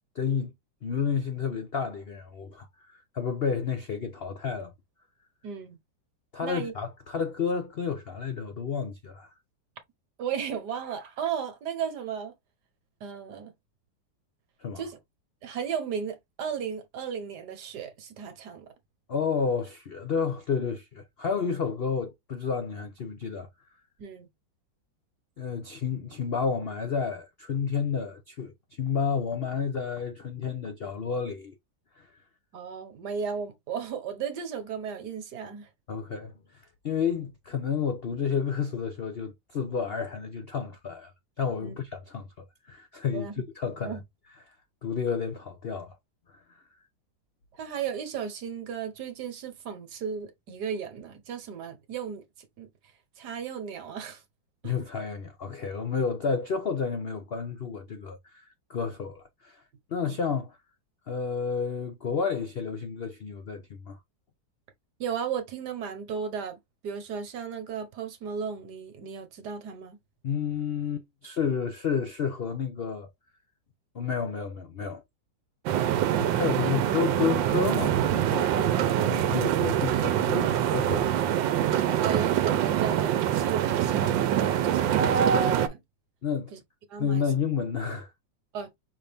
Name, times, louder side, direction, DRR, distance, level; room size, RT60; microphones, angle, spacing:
voice 1, 0.1-0.5 0.8-4.7 6.3-9.3 14.6-14.8 19.1-23.5 25.4-31.6 32.0-32.2 35.9-41.1 41.4-44.0 44.5-44.6 44.8-46.0 46.3-46.6 54.6-59.6 59.9-60.6 61.1-64.0 70.2-73.1 73.9-75.0 76.2-81.5 81.8-82.0 86.2-86.5 87.0-88.1, left 6 dB, 85° left, 0.5 m, -31 dB
voice 2, 5.4-5.8 6.4-6.7 10.2-12.3 13.0-13.5 14.8-15.0 15.4-18.7 24.0-24.3 32.5-35.7 41.6-41.8 43.1-43.3 43.6-44.0 47.6-52.2 52.6-52.7 53.2-54.2 54.6-54.7 65.0-66.6 66.8-70.0 79.9-80.0 80.4-80.7 82.0-85.8 86.5-86.6 86.9-87.2 88.5-88.7, right 7 dB, 65° right, 1.5 m, -35 dB
sound 1, 75.7-85.7, right 10 dB, 85° right, 1.3 m, -24 dB
5.6 x 2.6 x 3.4 m
omnidirectional pair, 2.0 m